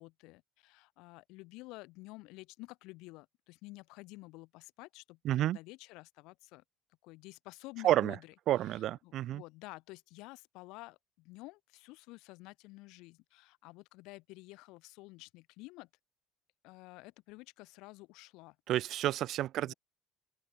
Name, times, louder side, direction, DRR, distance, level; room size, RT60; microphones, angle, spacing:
voice 1, 0.0-6.6 7.0-8.3 8.7-15.9 16.6-18.6 19.6-19.7, left 23 dB, 75° left, 3.6 m, -51 dB
voice 2, 5.2-5.6 7.8-8.2 8.5-9.4 18.7-19.7, right 13 dB, 60° right, 0.8 m, -30 dB
open air
hypercardioid pair, 70°, 0 cm